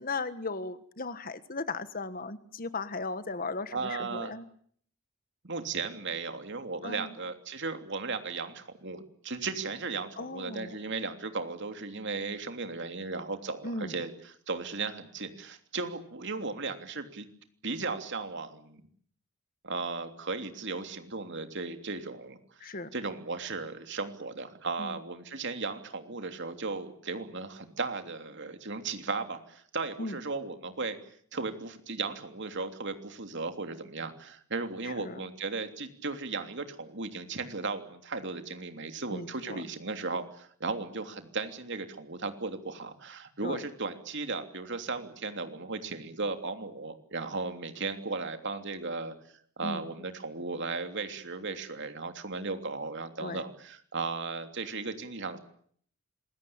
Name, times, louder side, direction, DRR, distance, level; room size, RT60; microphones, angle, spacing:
voice 1, 0.0-4.5 6.8-7.1 10.2-10.7 13.6-14.0 22.6-22.9 24.8-25.0 30.0-30.2 34.8-35.2 39.1-39.6 43.4-43.6 49.6-49.8 53.2-53.4, left 3 dB, 40° left, 13 dB, 1.5 m, -37 dB
voice 2, 3.7-4.3 5.4-17.3 17.6-18.8 19.6-31.0 31.3-49.1 49.6-55.4, right 3 dB, 55° right, 7 dB, 3.1 m, -36 dB
27.0 x 21.5 x 8.8 m, 0.62 s
head